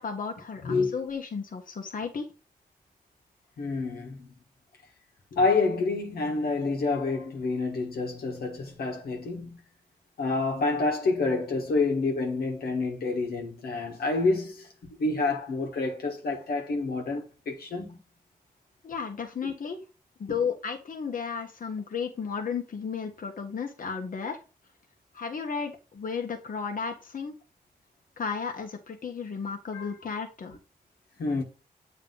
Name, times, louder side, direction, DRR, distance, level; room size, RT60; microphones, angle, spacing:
voice 1, 0.0-2.3 18.8-19.8 20.2-24.4 25.1-27.3 28.2-30.6, left 6 dB, 60° left, 1.2 m, -33 dB
voice 2, 0.6-1.0 3.6-4.3 5.3-9.6 10.2-14.7 15.0-18.0 19.4-19.5 29.7-29.9 31.2-31.4, left 3 dB, 85° left, 1.5 m, -28 dB
7.7 x 3.3 x 3.9 m
cardioid pair, 65°, 16 cm